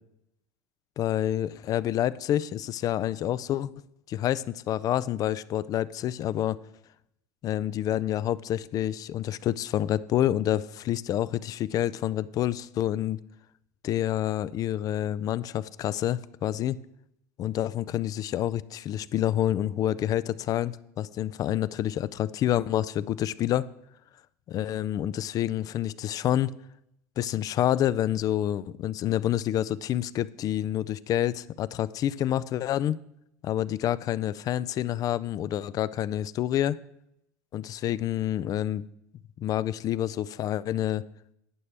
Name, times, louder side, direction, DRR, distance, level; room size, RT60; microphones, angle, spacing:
voice 1, 1.0-3.7 4.1-6.6 7.4-13.2 13.8-16.8 17.4-23.7 24.5-26.5 27.2-33.0 33.4-36.8 37.5-38.9 39.4-41.0, left 12 dB, 40° left, 18 dB, 0.4 m, -28 dB
11.0 x 8.5 x 3.4 m, 0.78 s
hypercardioid pair, 85°, 9 cm